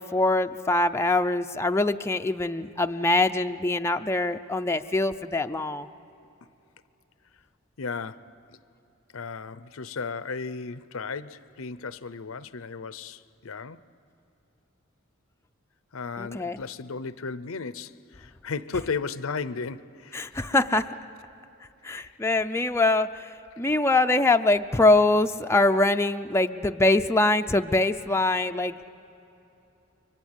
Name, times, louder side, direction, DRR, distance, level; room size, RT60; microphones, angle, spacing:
voice 1, 0.0-5.9 16.2-16.6 20.1-20.9 21.8-28.9, left 2 dB, 15° left, 0.5 m, -23 dB
voice 2, 7.8-8.3 9.1-13.8 15.9-20.2, left 4 dB, 75° left, 0.7 m, -35 dB
30.0 x 24.0 x 8.2 m
head